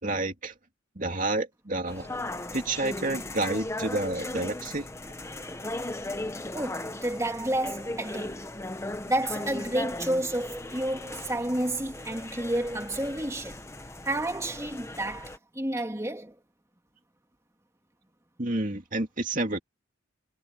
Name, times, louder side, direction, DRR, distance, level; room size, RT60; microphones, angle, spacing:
voice 1, 0.0-0.5 1.0-2.2 2.5-4.9 18.4-19.6, right 2 dB, 40° right, 2.5 m, -29 dB
sound 1, 1.9-15.4, left 2 dB, 15° left, 1.0 m, -37 dB
voice 2, 6.5-8.5 9.1-13.6 14.0-16.4, right 1 dB, 15° right, 2.5 m, -30 dB
head